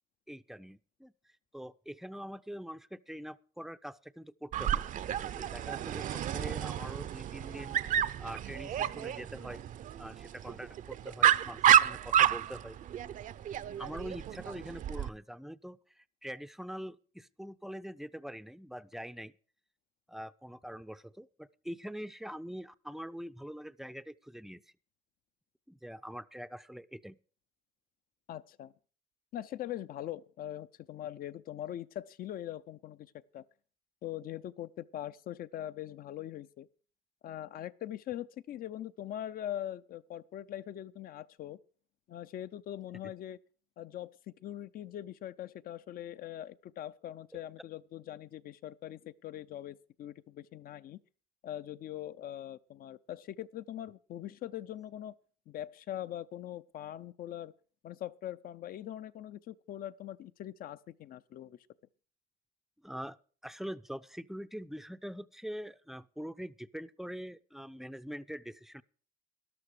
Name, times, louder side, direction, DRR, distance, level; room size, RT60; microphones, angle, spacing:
voice 1, 0.3-1.1 1.5-4.9 5.3-7.8 8.2-9.6 10.0-12.8 13.8-19.3 20.1-24.6 25.7-27.2 43.0-43.1 62.8-63.2 63.4-68.8, equal, ahead, 0.5 m, -44 dB
Dog, 4.5-15.1, right 10 dB, 50° right, 0.6 m, -30 dB
voice 2, 28.3-28.7 29.3-33.4 34.0-36.7 37.2-41.6 42.1-43.4 43.8-51.0 51.4-55.1 55.5-57.5 57.8-61.6, left 12 dB, 60° left, 0.7 m, -42 dB
13.0 x 12.0 x 4.9 m
cardioid pair, 110°, 17 cm